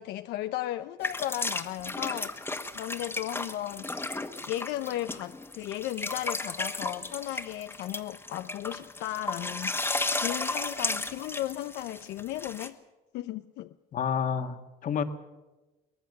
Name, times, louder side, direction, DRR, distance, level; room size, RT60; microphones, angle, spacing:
voice 1, 0.0-2.4 2.7-4.1 4.5-9.8 10.1-12.8 13.1-13.7, left 14 dB, 85° left, 0.7 m, -35 dB
sound 1, 1.0-12.7, left 2 dB, 15° left, 1.5 m, -34 dB
voice 2, 13.9-15.0, left 7 dB, 50° left, 1.7 m, -29 dB
23.5 x 18.5 x 6.7 m
cardioid pair, 110°, 17 cm